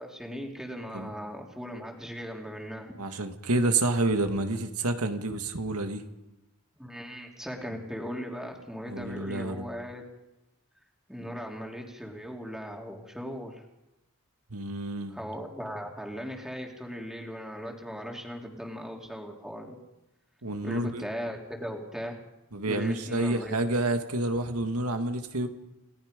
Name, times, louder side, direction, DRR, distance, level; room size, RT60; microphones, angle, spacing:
voice 1, 0.0-2.9 6.8-10.0 11.1-13.6 15.1-19.8 20.6-22.2 22.6-23.5, equal, ahead, 0 dB, 3.0 m, -38 dB
voice 2, 3.0-6.0 8.9-9.7 14.5-15.2 20.4-21.0 22.5-25.5, right 2 dB, 85° right, 7 dB, 1.9 m, -29 dB
29.5 x 18.0 x 5.2 m, 0.98 s
head